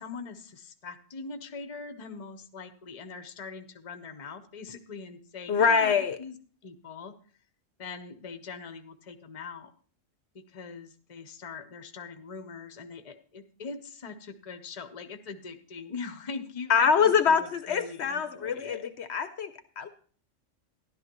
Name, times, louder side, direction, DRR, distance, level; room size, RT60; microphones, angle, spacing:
voice 1, 0.0-6.3 6.6-7.1 7.8-9.7 10.3-18.9, left 4 dB, 35° left, 9 dB, 0.8 m, -42 dB
voice 2, 5.5-6.2 16.7-19.9, left 6 dB, 65° left, 10 dB, 0.9 m, -24 dB
13.0 x 11.5 x 3.0 m, 0.44 s
omnidirectional pair, 1.3 m